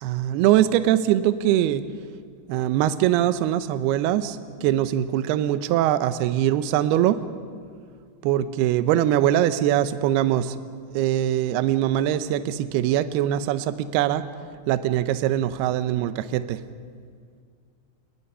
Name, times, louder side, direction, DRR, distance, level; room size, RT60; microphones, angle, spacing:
voice 1, 0.0-1.8 2.5-7.2 8.2-10.6 10.9-14.2 14.7-16.6, right 12 dB, 80° right, 12 dB, 2.4 m, -22 dB
29.5 x 20.0 x 5.6 m, 2.1 s
omnidirectional pair, 5.3 m